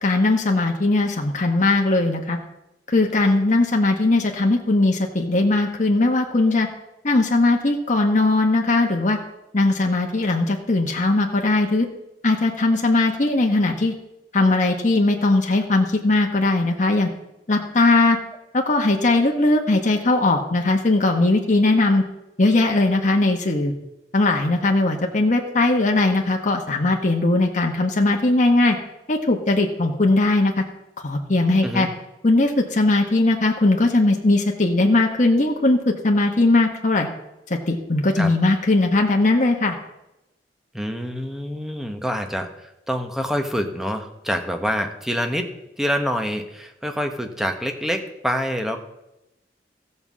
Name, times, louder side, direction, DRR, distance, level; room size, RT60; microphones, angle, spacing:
voice 1, 0.0-2.4 2.9-6.7 7.0-9.2 9.5-11.9 12.2-13.9 14.3-17.1 17.5-18.2 18.5-22.0 22.4-23.7 24.1-28.8 29.1-30.6 31.0-31.9 32.2-37.1 37.5-39.8, left 2 dB, 45° left, 1 dB, 1.0 m, -19 dB
voice 2, 40.7-42.5 42.9-45.5 45.8-48.8, equal, ahead, 5 dB, 0.9 m, -26 dB
14.5 x 5.4 x 7.3 m, 0.93 s
head